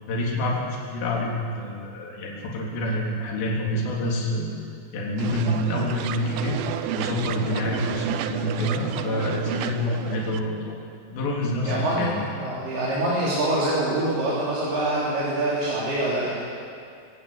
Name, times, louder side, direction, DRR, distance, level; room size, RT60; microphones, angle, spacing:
voice 1, 0.1-4.5 4.9-6.6 6.9-10.8 11.1-12.2, left 1 dB, 65° left, -3 dB, 5.6 m, -27 dB
sound 1, 5.2-10.4, right 10 dB, 85° right, 2.1 m, -31 dB
voice 2, 11.6-16.4, right 1 dB, 55° right, -8 dB, 5.5 m, -25 dB
24.5 x 17.0 x 8.7 m, 2.4 s
omnidirectional pair, 5.5 m